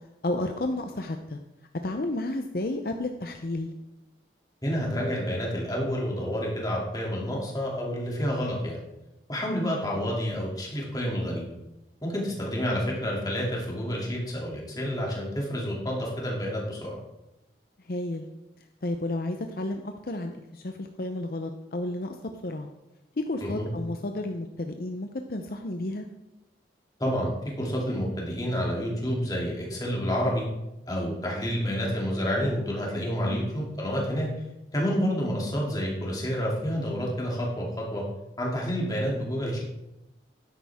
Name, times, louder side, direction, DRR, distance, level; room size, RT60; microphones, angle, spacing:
voice 1, 0.2-1.4 1.8-3.7 9.5-9.7 17.9-18.3 18.8-22.2 22.4-22.7 23.2-26.1 33.2-33.5, left 2 dB, 55° left, 5 dB, 0.7 m, -32 dB
voice 2, 4.6-8.8 9.3-11.5 12.0-17.0 23.4-23.7 27.0-27.3 27.6-30.5 30.9-34.3 34.7-38.0 38.4-39.6, equal, 20° left, -3 dB, 2.6 m, -29 dB
12.5 x 10.5 x 3.6 m, 0.94 s
head